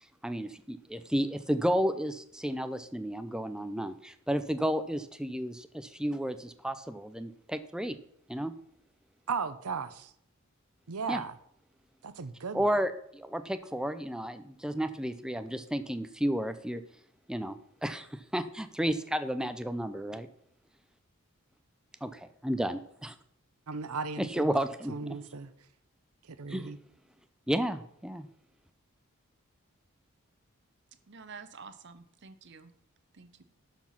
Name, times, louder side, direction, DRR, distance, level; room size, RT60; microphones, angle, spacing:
voice 1, 0.2-8.0 8.3-8.5 11.1-11.2 12.5-16.8 17.3-20.3 22.0-23.1 24.2-24.9 26.5-26.7 27.5-28.3, equal, 5° right, 0.5 m, -32 dB
voice 2, 9.3-10.1 10.9-11.3 12.0-12.7 23.7-24.5 24.9-25.5 26.2-26.8, right 5 dB, 85° right, 0.8 m, -36 dB
voice 3, 31.1-32.7 33.1-33.4, right 5 dB, 50° right, 0.8 m, -49 dB
12.0 x 4.5 x 5.7 m
head